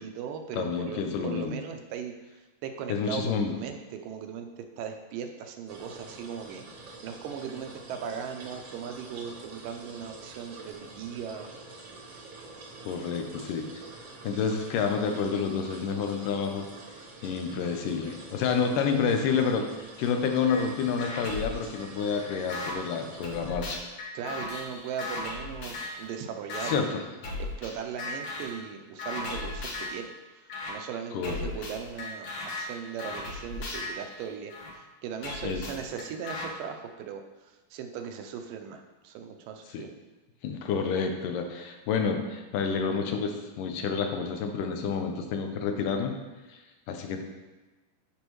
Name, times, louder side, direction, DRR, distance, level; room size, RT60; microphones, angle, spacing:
voice 1, 0.0-2.1 2.6-11.5 24.1-26.9 27.4-30.1 30.7-39.9, right 7 dB, 80° right, 5 dB, 2.3 m, -38 dB
voice 2, 0.5-1.6 2.9-3.5 12.9-13.7 14.2-16.7 17.2-23.8 26.6-27.0 31.1-31.5 35.4-35.6 39.7-39.8 40.4-46.1 46.9-47.2, left 6 dB, 80° left, 4 dB, 2.3 m, -29 dB
sound 1, 5.7-23.5, right 3 dB, 60° right, 1.6 m, -46 dB
sound 2, 20.5-20.6 21.0-22.7 23.2-26.0 26.5-26.7 27.2-27.7 28.0-28.6 29.0-30.0 30.5-30.7 31.2-34.7 35.2-36.5, left 2 dB, 60° left, 2.2 m, -37 dB
12.0 x 5.3 x 3.1 m, 1.2 s
omnidirectional pair, 3.9 m